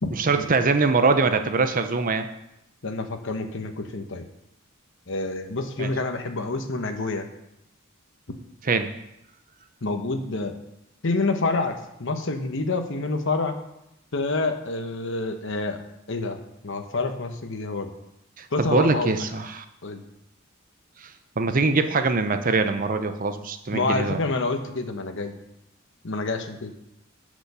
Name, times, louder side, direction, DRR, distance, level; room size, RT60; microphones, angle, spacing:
voice 1, 0.2-2.3 5.8-5.9 8.6-8.9 18.4-19.6 21.4-24.2, right 3 dB, 40° right, 9 dB, 0.7 m, -23 dB
voice 2, 2.8-4.2 5.1-7.3 9.8-10.5 11.0-13.6 14.1-15.8 16.1-16.4 16.6-17.9 18.5-19.1 19.8-20.0 23.7-25.4 26.0-26.7, left 3 dB, 60° left, 6 dB, 1.1 m, -27 dB
10.0 x 5.2 x 6.8 m, 0.84 s
head